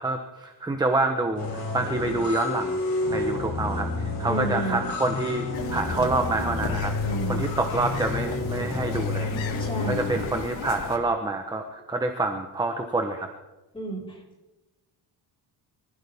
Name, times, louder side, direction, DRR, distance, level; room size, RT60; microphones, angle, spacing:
voice 1, 0.0-2.8 3.1-9.3 9.9-13.3, right 2 dB, 10° right, 5 dB, 1.0 m, -27 dB
sound 1, 1.4-10.3, left 3 dB, 45° left, 5.9 m, -30 dB
voice 2, 4.3-4.9 7.0-7.4 9.6-10.0 13.7-14.0, right 2 dB, 10° left, -3 dB, 4.9 m, -31 dB
sound 2, 5.5-11.0, left 6 dB, 75° left, 2.5 m, -36 dB
24.5 x 15.5 x 3.6 m, 1.1 s
cardioid pair, 155°, 46 cm